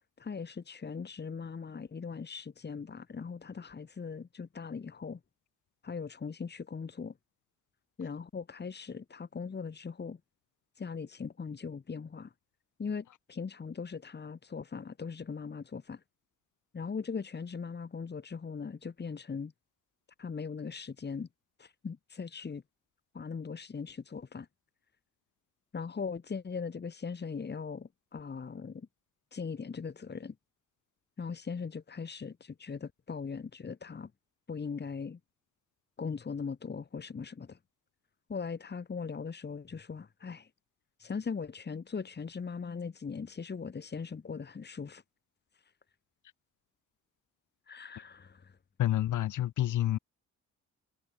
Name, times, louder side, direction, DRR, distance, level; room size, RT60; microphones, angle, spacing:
voice 1, 0.2-5.2 5.8-7.1 8.0-10.2 10.8-12.3 12.8-16.0 16.7-19.5 20.2-21.3 21.6-22.6 23.1-24.5 25.7-28.9 29.3-30.3 31.2-34.1 34.5-35.2 36.0-37.6 38.3-40.5 41.0-45.0 47.7-48.5, left 5 dB, 35° left, 3.6 m, -39 dB
voice 2, 48.8-50.0, left 13 dB, 80° left, 2.1 m, -28 dB
cardioid pair, 110°, 30 cm